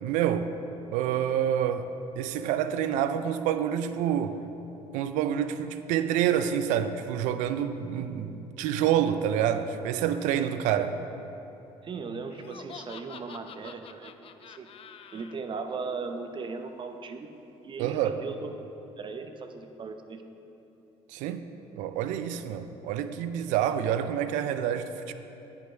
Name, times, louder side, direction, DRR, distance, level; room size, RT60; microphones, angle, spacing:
voice 1, 0.0-0.6 0.9-4.4 4.9-11.0 17.8-18.2 21.1-21.5 21.7-25.1, right 9 dB, 85° right, 0.4 m, -28 dB
voice 2, 11.8-14.1 14.4-14.7 15.1-17.3 17.6-18.5 19.0-20.2, right 4 dB, 40° right, 0.7 m, -37 dB
Laughter, 12.3-15.3, left 8 dB, 50° left, 0.4 m, -47 dB
9.8 x 5.4 x 4.5 m
supercardioid pair, 75°, 12 cm